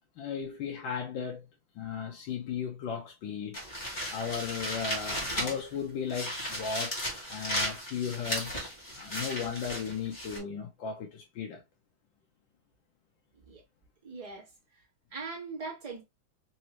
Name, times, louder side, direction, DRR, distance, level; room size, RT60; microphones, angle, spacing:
voice 1, 0.2-1.5 1.7-3.6 4.1-6.9 7.3-11.6, left 7 dB, 75° left, 1.3 m, -36 dB
sound 1, 3.5-5.8 6.1-10.4, equal, 25° left, 1.3 m, -35 dB
voice 2, 14.0-14.5 15.1-16.0, right 4 dB, 20° right, 1.2 m, -40 dB
4.0 x 2.7 x 2.9 m
omnidirectional pair, 2.2 m